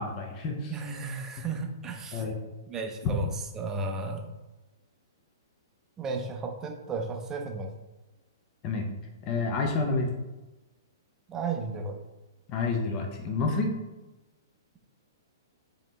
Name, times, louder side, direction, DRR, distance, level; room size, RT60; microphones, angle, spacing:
voice 1, 0.0-0.7 2.1-2.3 8.6-8.9 9.2-10.1 12.5-13.7, left 3 dB, 35° left, 2 dB, 0.7 m, -29 dB
voice 2, 0.7-2.3 2.7-4.3 6.0-7.7 11.3-12.0, right 3 dB, 20° right, 3 dB, 0.6 m, -34 dB
5.1 x 2.9 x 3.2 m, 1.1 s
hypercardioid pair, 120°, 2 cm